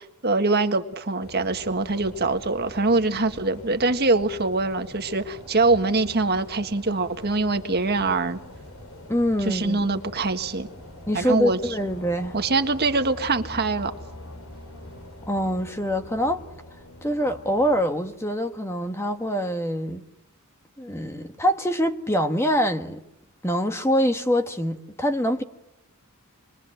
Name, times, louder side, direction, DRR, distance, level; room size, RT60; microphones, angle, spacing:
voice 1, 0.0-8.4 9.5-10.7 11.1-11.6 12.3-13.9, right 3 dB, 45° right, 1.7 m, -23 dB
sound 1, 1.2-19.1, left 1 dB, 65° left, 4.0 m, -45 dB
voice 2, 9.1-9.8 11.1-12.3 15.3-16.4 17.0-20.0 20.8-23.0 23.4-25.4, equal, 10° left, 1.3 m, -24 dB
sound 2, 11.2-17.9, left 1 dB, 80° left, 2.6 m, -45 dB
27.0 x 22.5 x 7.8 m
head